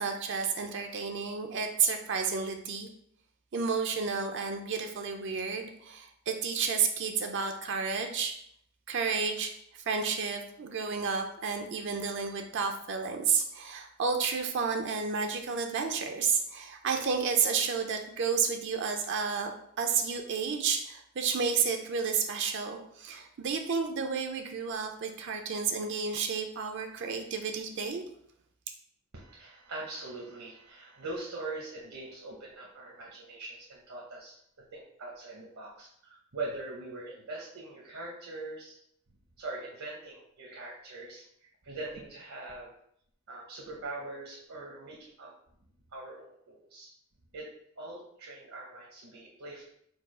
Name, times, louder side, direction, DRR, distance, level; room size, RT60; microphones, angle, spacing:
voice 1, 0.0-2.9 3.5-8.4 8.9-19.5 19.8-28.0, right 5 dB, 55° right, 4 dB, 0.5 m, -31 dB
voice 2, 29.1-38.8 39.4-42.7 43.3-45.3 45.9-46.9 47.3-47.5 47.8-49.7, right 2 dB, 70° right, -2 dB, 0.9 m, -42 dB
4.6 x 2.4 x 4.8 m, 0.69 s
head